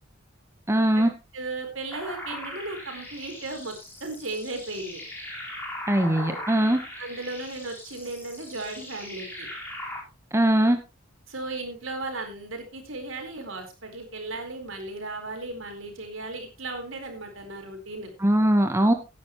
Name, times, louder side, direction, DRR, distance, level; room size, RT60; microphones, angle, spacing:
voice 1, 0.7-1.1 5.9-6.8 10.3-10.8 18.2-18.9, right 1 dB, 15° right, 6 dB, 1.2 m, -20 dB
voice 2, 1.3-5.0 6.1-6.4 7.0-9.5 11.3-18.1, right 2 dB, 75° right, 4 dB, 4.4 m, -36 dB
sound 1, 1.9-10.0, left 1 dB, 10° left, 4.5 m, -39 dB
16.5 x 10.0 x 3.1 m, 0.27 s
head